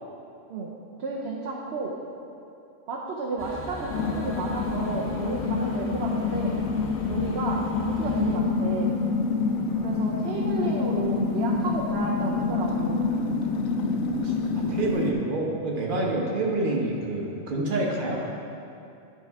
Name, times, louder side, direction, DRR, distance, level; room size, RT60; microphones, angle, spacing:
voice 1, 1.0-1.9 2.9-6.6 7.1-9.0 9.8-13.1, right 3 dB, 55° right, -3 dB, 0.9 m, -32 dB
sound 1, 3.4-8.4, left 1 dB, 20° left, 0.4 m, -39 dB
sound 2, 3.9-15.1, left 4 dB, 90° left, 1.0 m, -27 dB
voice 2, 14.2-18.2, right 2 dB, 40° right, -2 dB, 1.2 m, -27 dB
11.0 x 4.1 x 4.7 m, 2.7 s
omnidirectional pair, 1.4 m